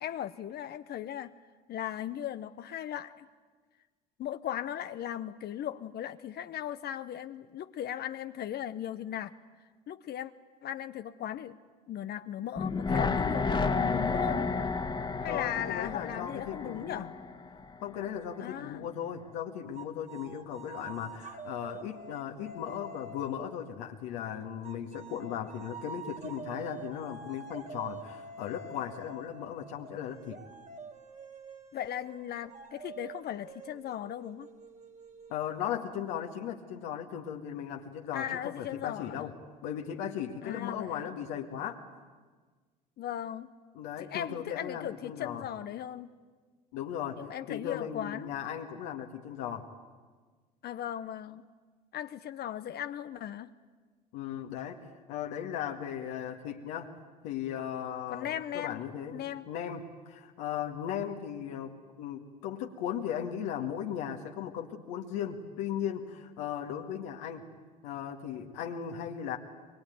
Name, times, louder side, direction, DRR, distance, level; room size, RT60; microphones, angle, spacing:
voice 1, 0.0-1.3 1.7-3.3 4.2-9.3 9.9-10.3 10.6-11.6 11.9-14.5 15.2-17.1 18.4-18.9 31.7-34.5 38.1-39.3 40.4-41.1 43.0-43.5 44.0-46.1 47.2-48.3 50.6-51.4 51.9-53.5 58.1-58.8 59.1-59.5, left 10 dB, 50° left, 10 dB, 1.0 m, -37 dB
sound 1, 12.6-17.7 18.0-18.1, left 4 dB, 25° left, 1.8 m, -31 dB
voice 2, 15.3-17.1 17.8-30.4 35.3-39.3 39.6-41.8 43.7-45.5 46.7-47.2 47.5-49.7 54.1-54.8 55.1-56.9 57.2-59.2 59.5-61.7 62.0-67.5 67.8-69.4, left 9 dB, 75° left, 1 dB, 2.0 m, -37 dB
sound 2, 19.8-23.7 24.6-36.0, right 4 dB, 35° right, 2.4 m, -47 dB
23.0 x 23.0 x 9.4 m, 1.4 s
hypercardioid pair, 75°, 20 cm